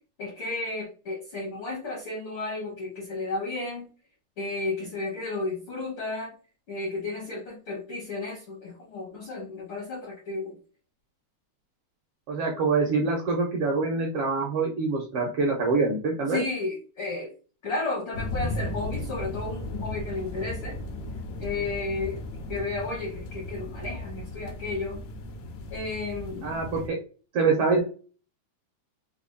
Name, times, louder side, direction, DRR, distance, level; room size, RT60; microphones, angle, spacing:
voice 1, 0.2-3.9 4.4-6.4 6.7-10.6 16.3-17.3 17.6-20.8 21.4-22.2 22.5-25.0 25.7-26.5, left 3 dB, 70° left, -2 dB, 1.2 m, -33 dB
voice 2, 12.3-16.4 26.4-27.0 27.3-27.8, right 4 dB, 70° right, -1 dB, 1.4 m, -25 dB
sound 1, 18.1-26.9, left 1 dB, 85° left, 2.1 m, -36 dB
4.9 x 2.3 x 2.5 m, 0.35 s
omnidirectional pair, 3.4 m